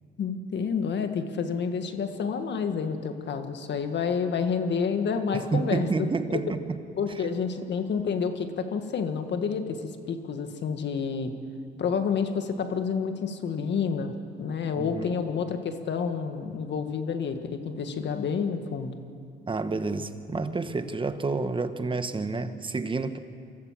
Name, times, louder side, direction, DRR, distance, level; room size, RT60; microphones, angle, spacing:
voice 1, 0.2-5.9 6.3-6.4 7.0-11.4 11.8-19.0, left 6 dB, 60° left, 7 dB, 1.7 m, -29 dB
voice 2, 5.3-6.8 14.8-15.2 19.5-23.2, right 3 dB, 25° right, 10 dB, 1.2 m, -29 dB
25.0 x 14.0 x 7.6 m, 2.3 s
cardioid pair, 90°, 20 cm